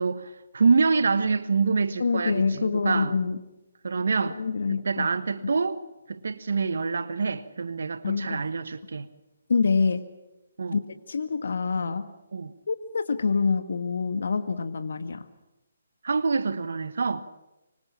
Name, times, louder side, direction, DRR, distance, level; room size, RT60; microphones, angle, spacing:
voice 1, 0.0-3.1 3.8-4.4 4.8-5.8 6.1-9.1 10.6-10.8 12.3-12.5 16.0-17.2, right 4 dB, 70° right, 1.3 m, -26 dB
voice 2, 2.0-3.4 4.2-5.1 8.0-8.4 9.5-10.1 10.7-10.8 11.1-12.1 12.7-15.3, left 5 dB, 65° left, 1.6 m, -26 dB
26.0 x 24.5 x 7.4 m
figure-of-eight pair, 145°, 0 cm